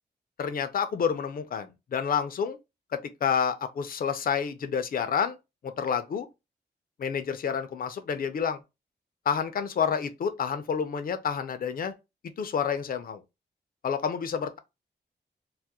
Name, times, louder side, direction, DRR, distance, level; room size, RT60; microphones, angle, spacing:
voice 1, 0.4-2.6 2.9-5.4 5.6-6.3 7.0-8.6 9.3-11.9 12.4-13.2 13.8-14.6, left 7 dB, 55° left, 0.4 m, -29 dB
2.3 x 2.0 x 2.7 m
cardioid pair, 80°, 18 cm